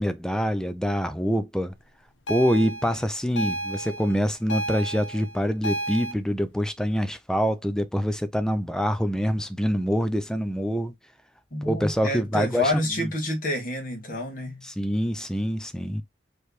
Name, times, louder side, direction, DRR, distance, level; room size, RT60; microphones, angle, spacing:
voice 1, 0.0-1.7 2.3-10.9 11.6-12.7 13.0-13.1 14.8-16.0, equal, 5° left, 0.5 m, -25 dB
sound 1, 2.3-6.1, right 1 dB, 80° left, 0.8 m, -32 dB
voice 2, 11.5-14.7, left 1 dB, 50° left, 1.8 m, -28 dB
4.8 x 3.3 x 3.1 m
head